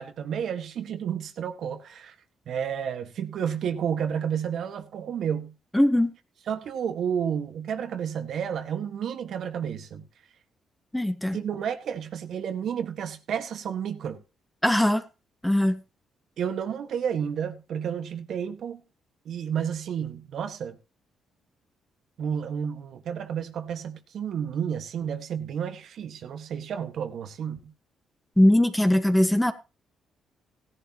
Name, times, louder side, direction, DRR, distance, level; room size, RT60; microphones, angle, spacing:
voice 1, 0.0-2.2 2.5-5.5 6.5-10.0 11.3-14.2 16.4-18.8 19.3-20.8 22.2-27.7, right 8 dB, 70° right, 1.7 m, -31 dB
voice 2, 5.7-6.1 10.9-11.4 14.6-15.0 15.4-15.8 28.4-29.5, left 1 dB, 5° left, 1.6 m, -20 dB
16.5 x 11.0 x 3.0 m
cardioid pair, 90°, 0 cm